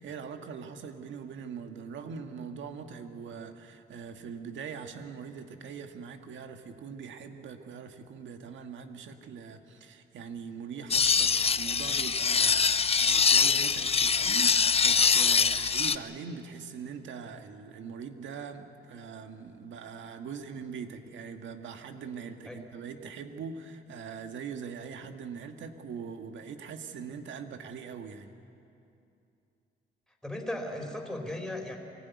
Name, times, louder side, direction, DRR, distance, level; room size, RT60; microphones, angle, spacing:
voice 1, 0.0-28.3, right 6 dB, 70° right, 6 dB, 1.7 m, -42 dB
sound 1, 10.9-16.0, left 5 dB, 30° left, 0.7 m, -24 dB
voice 2, 30.2-31.8, left 1 dB, ahead, 1 dB, 4.1 m, -36 dB
24.0 x 16.0 x 9.6 m, 2.7 s
cardioid pair, 90°, 20 cm